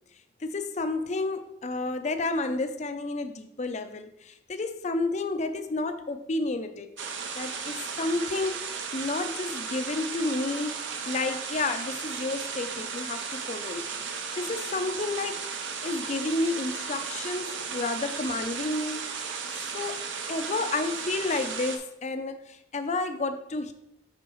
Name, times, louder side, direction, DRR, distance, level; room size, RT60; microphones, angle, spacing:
voice 1, 0.4-6.9 7.4-13.8 14.4-15.4 15.8-19.1 19.7-23.7, left 2 dB, 35° left, 8 dB, 0.5 m, -31 dB
sound 1, 7.0-21.8, right 5 dB, 70° right, 0.7 m, -35 dB
8.2 x 5.1 x 3.1 m, 0.80 s
head